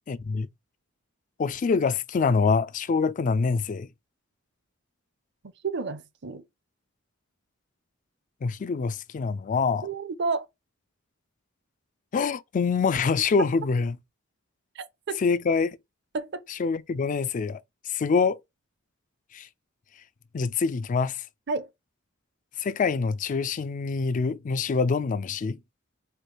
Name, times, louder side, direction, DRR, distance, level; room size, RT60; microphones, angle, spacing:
voice 1, 0.1-0.5 1.4-3.9 8.4-9.9 12.1-14.0 15.2-15.8 16.6-17.6 17.9-18.4 19.3-19.5 20.3-21.2 22.6-25.6, left 5 dB, 40° left, 0.3 m, -25 dB
voice 2, 5.6-6.4 9.8-10.5 14.7-15.2 16.1-16.4 21.5-21.7, right 4 dB, 60° right, 0.7 m, -31 dB
4.5 x 2.4 x 4.7 m
head